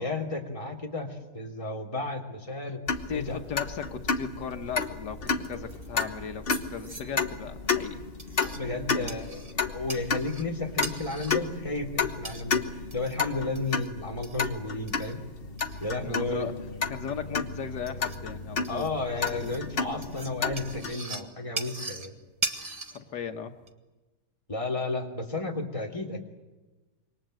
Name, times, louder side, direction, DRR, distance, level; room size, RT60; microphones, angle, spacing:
voice 1, 0.0-2.8 3.1-3.4 8.4-12.6 12.9-15.2 15.8-16.5 18.7-22.2 24.5-26.2, left 2 dB, 20° left, 0 dB, 3.1 m, -33 dB
wall clock chiming and ticking, 2.9-20.9, left 5 dB, 35° left, 1.3 m, -32 dB
voice 2, 3.1-8.1 9.0-9.1 16.0-16.5 16.9-18.9 19.3-19.6 22.9-23.5, left 7 dB, 85° left, 6 dB, 1.9 m, -37 dB
sound 1, 4.2-23.7, right 2 dB, 20° right, 1.6 m, -42 dB
27.0 x 24.0 x 7.8 m, 1.2 s
omnidirectional pair, 1.8 m